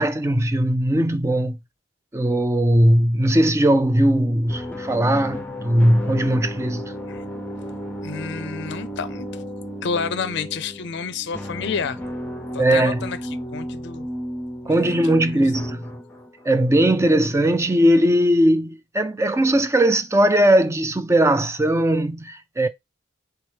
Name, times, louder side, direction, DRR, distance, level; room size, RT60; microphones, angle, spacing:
voice 1, 0.0-1.6 2.1-6.8 12.6-13.0 14.7-15.8 16.5-22.7, right 1 dB, 15° right, 0.3 m, -19 dB
sound 1, 4.5-16.6, equal, 10° left, 0.8 m, -33 dB
voice 2, 8.0-9.3 9.8-12.0 12.5-13.2 13.5-14.1 14.7-15.4, left 5 dB, 55° left, 0.5 m, -29 dB
3.4 x 3.1 x 4.7 m
head